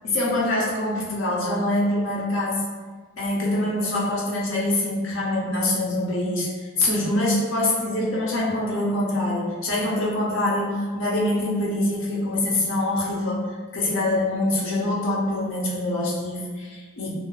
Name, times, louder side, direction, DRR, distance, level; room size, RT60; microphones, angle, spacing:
voice 1, 0.0-2.6 3.2-13.4 13.7-17.1, left 1 dB, 70° left, -5 dB, 0.6 m, -24 dB
2.4 x 2.0 x 3.0 m, 1.4 s
head